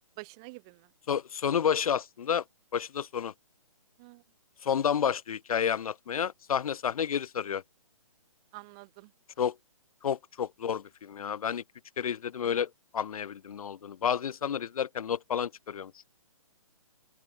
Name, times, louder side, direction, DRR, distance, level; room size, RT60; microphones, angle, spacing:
voice 1, 0.0-0.9 4.0-4.2 8.5-9.1, right 29 dB, 10° right, 0.4 m, -47 dB
voice 2, 1.1-2.4 2.7-3.3 4.6-7.6 9.4-9.6 10.0-11.6 12.0-15.9, left 8 dB, 75° left, 0.6 m, -30 dB
open air
hypercardioid pair, 170°, 18 cm